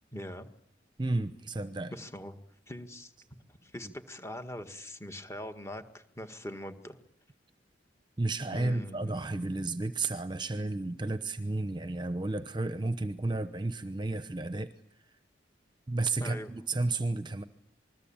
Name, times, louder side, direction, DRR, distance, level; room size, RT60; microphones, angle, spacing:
voice 1, 0.1-0.5 1.9-2.4 2.7-3.1 3.6-7.0 8.5-9.1 16.2-16.5, left 1 dB, 15° left, 1.8 m, -42 dB
voice 2, 1.0-1.9 3.8-3.9 8.2-14.7 15.9-17.4, right 2 dB, 25° right, 0.9 m, -32 dB
27.5 x 21.0 x 8.9 m
head